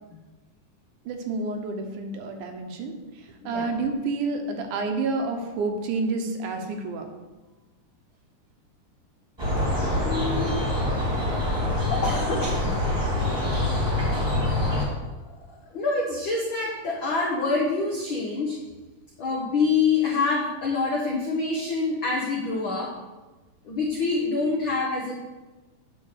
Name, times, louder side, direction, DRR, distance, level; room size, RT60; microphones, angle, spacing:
voice 1, 1.1-7.1, right 3 dB, 75° right, 4 dB, 2.3 m, -29 dB
sound 1, 9.4-14.8, left 1 dB, 10° right, 1.6 m, -25 dB
voice 2, 10.0-10.6 11.6-12.7 15.5-18.6 19.2-23.0 23.6-25.2, left 4 dB, 85° left, -2 dB, 1.0 m, -26 dB
9.0 x 3.8 x 6.5 m, 1.2 s
omnidirectional pair, 3.7 m